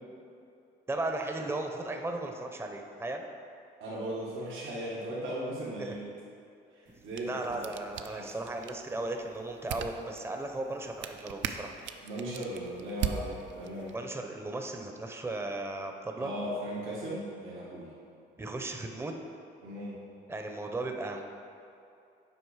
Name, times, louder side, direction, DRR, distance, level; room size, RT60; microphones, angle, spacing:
voice 1, 0.9-3.2 5.8-6.0 7.2-11.7 13.9-16.3 18.4-19.2 20.3-21.2, right 2 dB, 10° right, 4 dB, 0.6 m, -36 dB
voice 2, 3.8-6.1 6.7-7.7 8.0-8.3 12.0-13.9 16.1-17.9 19.6-20.0, right 1 dB, 90° right, -6 dB, 1.4 m, -37 dB
sound 1, 6.9-14.0, right 8 dB, 70° right, 0.5 m, -40 dB
7.9 x 5.0 x 4.8 m, 2.6 s
cardioid pair, 90°, 20 cm